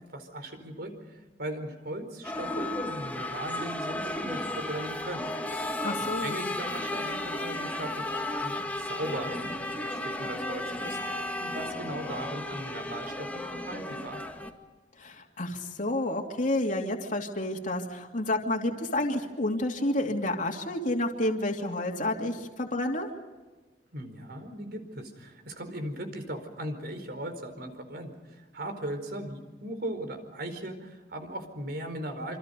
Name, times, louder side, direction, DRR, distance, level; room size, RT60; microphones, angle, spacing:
voice 1, 0.1-5.3 6.0-14.2 23.9-32.4, right 1 dB, 60° right, 7 dB, 4.6 m, -38 dB
sound 1, 2.2-14.5, left 1 dB, 10° left, 2.1 m, -34 dB
voice 2, 5.8-6.3 15.0-23.1, left 1 dB, 50° left, 1 dB, 2.8 m, -30 dB
27.0 x 27.0 x 5.4 m, 1.2 s
head